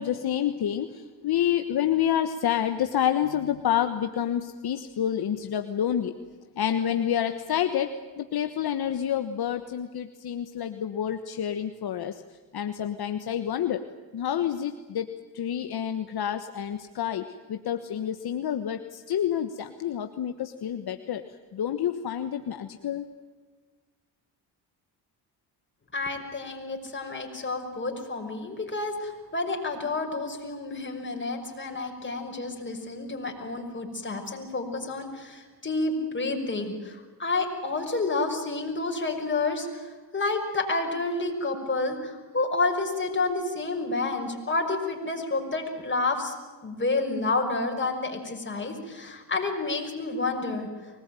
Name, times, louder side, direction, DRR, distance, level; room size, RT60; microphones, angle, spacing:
voice 1, 0.0-6.1 6.6-12.2 12.5-13.8 14.1-15.1 15.3-21.2 21.5-23.1, left 10 dB, 60° left, 8 dB, 1.4 m, -28 dB
voice 2, 25.9-39.8 40.1-46.3 46.6-50.7, left 3 dB, 25° left, 3 dB, 5.7 m, -29 dB
24.5 x 19.5 x 9.1 m, 1.4 s
cardioid pair, 80°, 43 cm